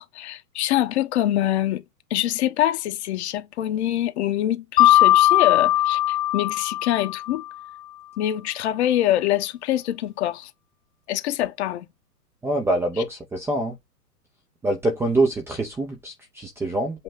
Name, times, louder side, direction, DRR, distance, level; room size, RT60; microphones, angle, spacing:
voice 1, 0.0-1.8 2.1-7.4 8.2-10.5 11.1-11.9, left 13 dB, 45° left, 1.2 m, -24 dB
Mallet percussion, 4.8-7.5, left 14 dB, 20° left, 1.1 m, -19 dB
voice 2, 12.4-13.8 14.6-17.0, right 2 dB, 5° right, 0.6 m, -25 dB
8.0 x 3.1 x 6.2 m
hypercardioid pair, 120°, 47 cm